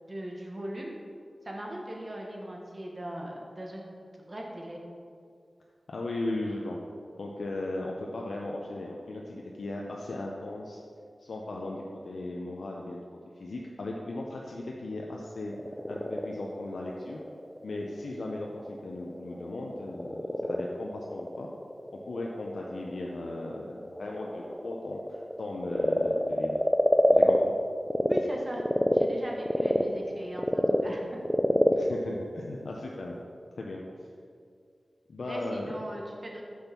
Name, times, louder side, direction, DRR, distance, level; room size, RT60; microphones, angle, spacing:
voice 1, 0.1-1.0 1.4-3.8 4.2-4.8 28.1-31.2 35.3-36.4, right 1 dB, 35° right, -1 dB, 1.1 m, -39 dB
voice 2, 5.9-6.8 7.2-10.8 11.2-13.0 13.4-15.5 15.9-17.2 17.6-21.5 22.1-26.6 27.1-27.4 31.8-33.1 33.6-33.8 35.1-35.7, left 2 dB, 85° left, -1 dB, 0.6 m, -37 dB
Frog, 15.3-28.2 28.6-33.2, equal, 5° left, 0.4 m, -28 dB
6.2 x 5.3 x 5.8 m, 2.2 s
wide cardioid pair, 85°, 0 cm